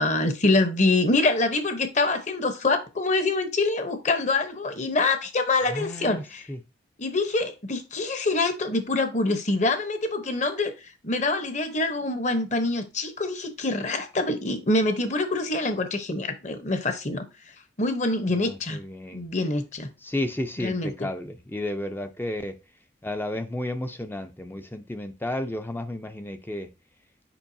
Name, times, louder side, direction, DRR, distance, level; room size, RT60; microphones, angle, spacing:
voice 1, 0.0-6.4 7.0-17.2 17.8-18.8 19.1-19.9 20.6-20.9, left 2 dB, 35° left, 0.9 m, -25 dB
voice 2, 5.7-6.2 6.5-6.6 18.3-19.3 20.0-22.5 23.0-26.7, left 1 dB, 10° left, 0.4 m, -32 dB
7.1 x 5.3 x 2.7 m
head